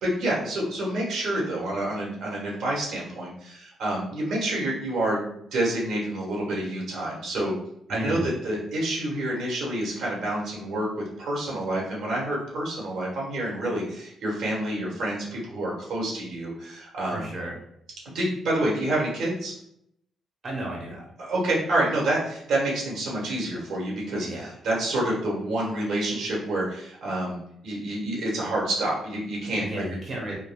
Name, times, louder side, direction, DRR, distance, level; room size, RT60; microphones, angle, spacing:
voice 1, 0.0-7.5 7.9-10.9 11.2-17.3 18.0-19.5 21.2-27.4 27.6-29.8, right 1 dB, 75° right, -4 dB, 1.1 m, -28 dB
voice 2, 7.9-8.3 17.1-17.5 20.4-21.0 24.2-24.5 29.6-30.4, right 1 dB, 40° right, -3 dB, 1.0 m, -33 dB
3.6 x 2.2 x 2.3 m, 0.73 s
supercardioid pair, 65°, 0 cm